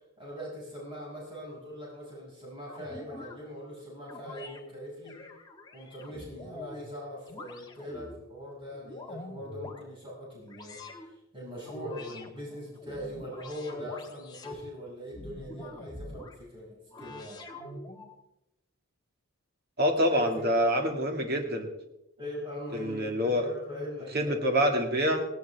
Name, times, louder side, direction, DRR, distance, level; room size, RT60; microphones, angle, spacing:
voice 1, 0.2-5.2 5.7-17.4 20.1-20.6 22.2-24.4, equal, 25° right, -6 dB, 6.2 m, -41 dB
sound 1, 2.7-3.4 4.1-4.6 5.0-6.9 7.3-8.2 8.7-9.8 10.5-11.1 11.6-12.3 12.8-14.6 15.1-16.4 16.9-18.1, left 2 dB, 20° left, 1.6 m, -44 dB
voice 2, 19.8-21.7 22.8-23.4 24.1-25.2, equal, 45° right, 3 dB, 2.3 m, -26 dB
18.5 x 17.5 x 3.5 m, 0.92 s
head